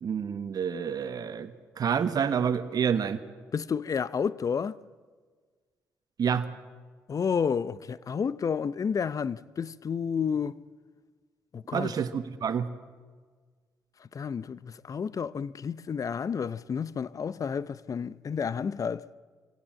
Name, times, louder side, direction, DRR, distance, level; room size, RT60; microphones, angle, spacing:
voice 1, 0.0-3.2 6.2-6.5 11.7-12.7, right 7 dB, 55° right, 1.3 m, -28 dB
voice 2, 3.5-4.8 7.1-10.6 11.5-11.9 14.1-19.1, left 6 dB, 45° left, 0.7 m, -30 dB
24.0 x 17.0 x 7.7 m
hypercardioid pair, 45°, 8 cm